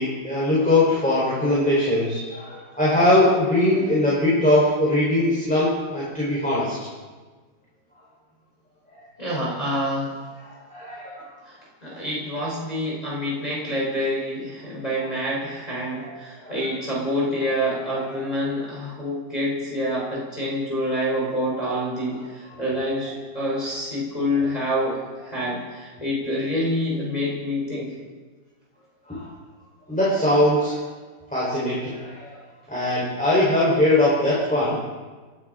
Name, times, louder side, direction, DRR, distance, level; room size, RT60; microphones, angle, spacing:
voice 1, 0.0-6.7 8.9-9.0 10.4-11.2 16.0-16.1 16.4-16.6 29.1-29.3 29.9-30.8 31.3-32.3 32.7-34.8, left 1 dB, 5° left, -8 dB, 4.2 m, -21 dB
voice 2, 9.2-10.2 11.5-25.0 25.2-27.9, equal, 20° left, -5 dB, 3.9 m, -27 dB
26.5 x 12.0 x 3.8 m, 1.3 s
omnidirectional pair, 1.9 m